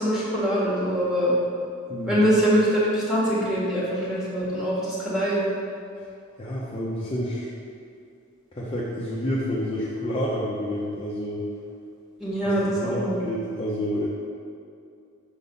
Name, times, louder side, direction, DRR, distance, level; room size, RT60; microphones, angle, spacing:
voice 1, 0.0-1.3 2.0-5.4 12.2-13.2, equal, ahead, -8 dB, 1.6 m, -23 dB
voice 2, 1.9-2.3 6.4-7.5 8.5-11.5 12.4-14.1, equal, 25° left, -7 dB, 0.6 m, -29 dB
6.4 x 4.0 x 5.4 m, 2.5 s
head